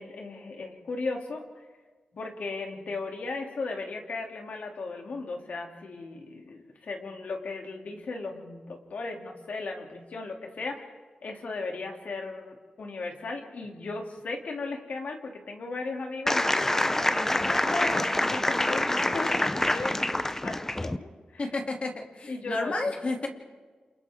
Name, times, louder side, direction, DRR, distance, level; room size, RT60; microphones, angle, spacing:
voice 1, 0.0-1.4 2.2-19.9 20.4-20.6 20.8-21.5 22.3-22.9, left 3 dB, 70° left, 2 dB, 2.9 m, -36 dB
sound 1, 16.3-21.0, left 1 dB, 15° left, 0.7 m, -26 dB
voice 2, 21.4-23.3, left 2 dB, 50° left, 1 dB, 2.8 m, -31 dB
29.0 x 28.0 x 3.7 m, 1.4 s
wide cardioid pair, 100°, 3 cm